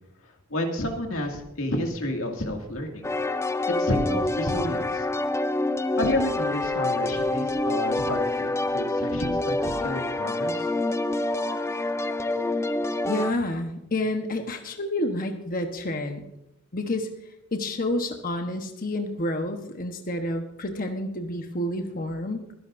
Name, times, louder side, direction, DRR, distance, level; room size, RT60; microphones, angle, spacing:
voice 1, 0.5-3.1 3.8-5.1 6.0-10.7, left 1 dB, 70° left, 2 dB, 2.3 m, -30 dB
sound 1, 3.0-13.3, left 2 dB, 15° left, 0.4 m, -27 dB
voice 2, 13.1-16.3 16.7-17.1 17.5-22.5, left 1 dB, 40° left, 4 dB, 1.1 m, -29 dB
23.5 x 11.0 x 2.6 m, 0.82 s
head